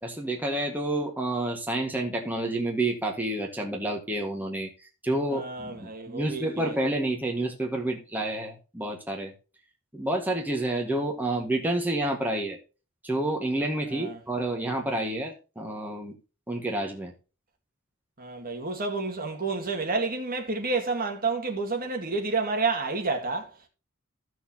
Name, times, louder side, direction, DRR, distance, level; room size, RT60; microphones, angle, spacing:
voice 1, 0.0-9.3 9.9-12.6 13.0-16.2 16.5-17.1, right 1 dB, 10° right, 1.6 m, -29 dB
voice 2, 5.3-6.8 13.9-14.2 18.2-23.7, right 3 dB, 45° right, 2.0 m, -30 dB
15.0 x 6.3 x 2.8 m
head